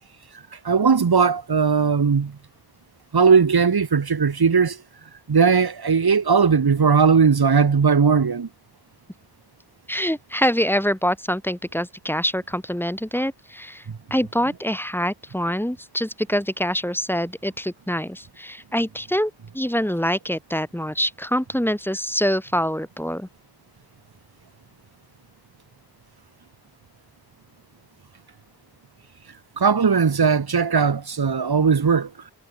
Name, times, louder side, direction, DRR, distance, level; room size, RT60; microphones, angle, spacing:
voice 1, 0.6-2.3 3.1-4.8 5.3-8.5 29.6-32.1, right 5 dB, 75° right, 4.0 m, -18 dB
voice 2, 9.9-13.8 14.1-23.3, equal, 5° left, 4.9 m, -25 dB
cardioid pair, 55°, 38 cm